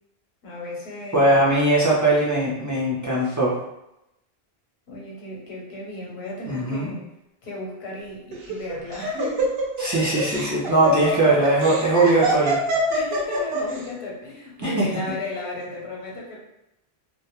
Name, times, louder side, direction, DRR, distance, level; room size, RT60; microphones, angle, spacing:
voice 1, 0.4-1.5 4.9-7.0 7.4-9.5 12.9-16.4, left 1 dB, 85° left, -3 dB, 0.9 m, -34 dB
voice 2, 1.1-3.6 6.5-6.9 9.8-12.6 14.6-14.7, right 2 dB, 25° right, -6 dB, 0.4 m, -20 dB
Laughter, 8.3-13.8, right 2 dB, 70° right, 0.8 m, -25 dB
2.2 x 2.1 x 2.9 m, 0.87 s
omnidirectional pair, 1.0 m